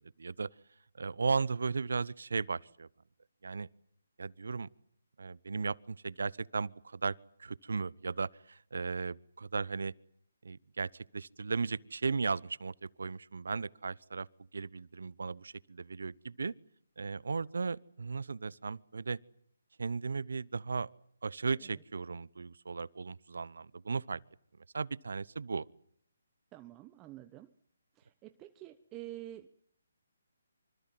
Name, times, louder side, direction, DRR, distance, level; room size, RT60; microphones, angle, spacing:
voice 1, 0.2-0.5 1.0-2.9 3.4-3.7 4.2-4.7 5.2-7.1 7.4-9.9 10.4-14.3 14.5-16.5 17.0-19.2 19.8-20.9 21.2-24.2 24.7-25.6, right 4 dB, 70° right, 1.0 m, -36 dB
voice 2, 26.5-27.5 28.0-29.6, right 14 dB, 20° right, 1.1 m, -48 dB
25.5 x 25.5 x 7.8 m
figure-of-eight pair, 150°, 0 cm